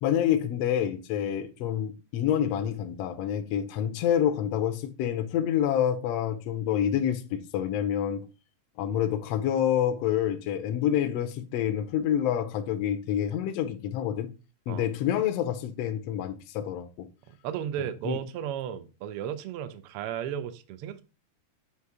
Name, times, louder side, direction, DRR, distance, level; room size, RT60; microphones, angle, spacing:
voice 1, 0.0-8.3 8.8-14.3 14.7-17.1 18.0-18.2, left 10 dB, 75° left, 1.5 m, -27 dB
voice 2, 17.4-21.0, right 10 dB, 85° right, 1.2 m, -34 dB
7.9 x 2.8 x 4.7 m
omnidirectional pair, 3.4 m